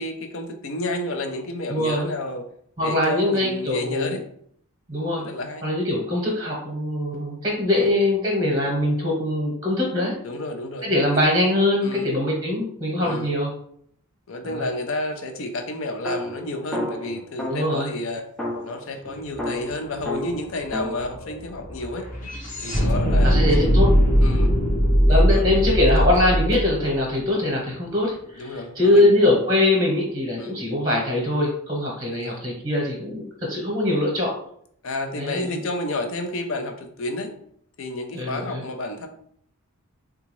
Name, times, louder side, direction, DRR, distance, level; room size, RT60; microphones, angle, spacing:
voice 1, 0.0-2.5 2.8-4.2 5.2-5.7 7.8-7.9 10.2-11.2 11.8-12.1 13.0-13.3 14.3-18.2 18.6-22.1 22.6-23.7 24.2-24.6 25.1-25.8 28.4-29.1 30.4-30.6 32.1-32.4 34.8-37.3 37.8-39.1, left 2 dB, 60° left, 5 dB, 0.5 m, -31 dB
voice 2, 1.7-2.0 2.8-4.1 4.9-5.3 5.6-10.1 10.8-13.5 14.5-14.6 17.5-17.9 23.2-23.9 25.1-34.4 35.2-35.6 38.1-38.6, left 1 dB, 25° right, -2 dB, 0.9 m, -22 dB
sound 1, 16.0-17.8 18.4-21.0, left 1 dB, 5° left, 0.4 m, -31 dB
sound 2, 19.3-19.4 19.7-27.9, equal, 35° left, 0.8 m, -21 dB
3.8 x 2.3 x 3.1 m, 0.65 s
head